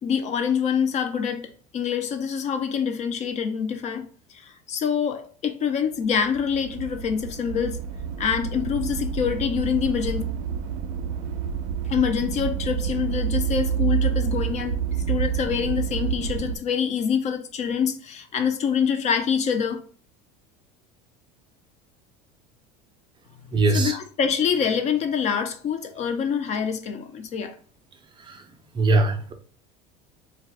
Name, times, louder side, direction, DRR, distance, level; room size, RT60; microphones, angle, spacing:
voice 1, 0.0-7.8 8.2-10.2 11.9-19.8 23.7-27.6, left 7 dB, 35° left, 0.4 m, -26 dB
sound 1, 6.1-16.6, right 7 dB, 80° right, 0.5 m, -28 dB
voice 2, 23.5-24.0 28.2-28.5 28.7-29.3, right 2 dB, 25° right, 0.4 m, -21 dB
2.4 x 2.2 x 3.5 m
supercardioid pair, 125°, 20 cm